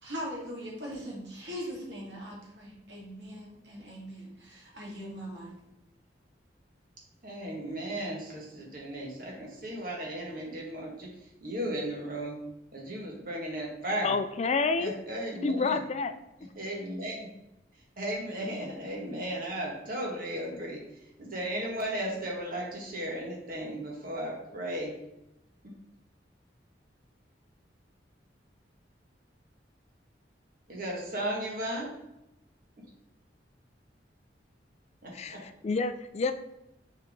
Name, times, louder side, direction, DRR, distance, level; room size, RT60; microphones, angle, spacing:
voice 1, 0.0-5.5, equal, 75° right, 2.2 m, -40 dB
voice 2, 7.2-11.1 11.4-12.4 12.7-14.1 14.8-15.8 16.5-17.3 18.0-20.8 21.2-24.9 25.6-25.7 30.7-31.9 35.0-35.4, right 1 dB, 50° right, 1.7 m, -35 dB
voice 3, 14.0-14.9 15.4-16.1 16.4-16.5 35.1-35.4 35.6-36.3, left 4 dB, 35° left, 0.4 m, -28 dB
6.7 x 4.6 x 3.7 m
head